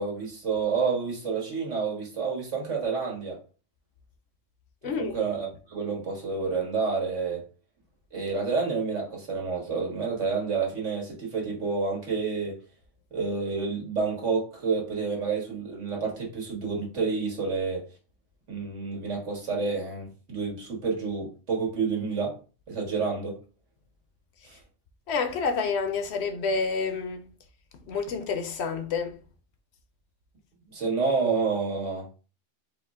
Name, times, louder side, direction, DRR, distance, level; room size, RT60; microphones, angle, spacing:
voice 1, 0.0-3.4 5.0-7.4 8.1-12.5 13.1-17.8 18.5-22.4 22.7-23.3 24.5-24.6 30.7-32.0, right 4 dB, 80° right, 1.8 m, -29 dB
voice 2, 4.8-5.1 25.1-27.2 27.9-29.2, left 5 dB, 70° left, 0.8 m, -28 dB
4.8 x 2.1 x 3.5 m
omnidirectional pair, 1.2 m